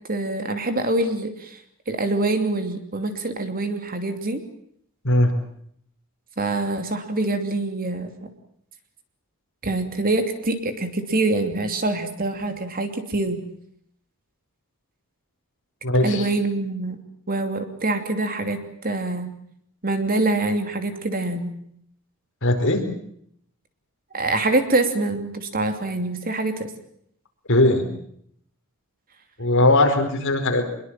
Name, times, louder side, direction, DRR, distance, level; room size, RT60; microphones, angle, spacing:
voice 1, 0.1-1.6 1.9-4.4 6.4-8.3 9.6-13.4 16.0-17.0 17.3-19.3 19.8-21.5 24.1-26.7, right 2 dB, 40° right, 7 dB, 2.9 m, -25 dB
voice 2, 15.8-16.3 22.4-22.8 27.5-27.8 29.4-30.7, left 2 dB, 60° left, 4 dB, 4.7 m, -19 dB
24.5 x 22.0 x 7.6 m, 0.68 s
head